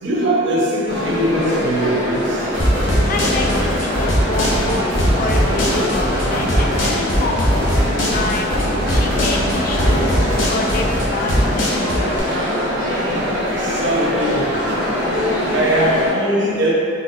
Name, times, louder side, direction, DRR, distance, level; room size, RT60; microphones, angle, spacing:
voice 1, 0.0-2.4 12.9-14.8 15.5-16.7, right 1 dB, 60° right, -4 dB, 0.6 m, -21 dB
sound 1, 0.9-16.1, left 1 dB, 85° right, 1.4 m, -23 dB
sound 2, 2.5-11.6, equal, 10° right, 0.7 m, -24 dB
sound 3, 2.6-12.2, equal, 75° left, 0.8 m, -20 dB
voice 2, 3.1-7.7 8.1-8.5 8.9-11.7, left 3 dB, 45° left, 0 dB, 0.3 m, -27 dB
3.9 x 2.4 x 2.7 m, 2.5 s
head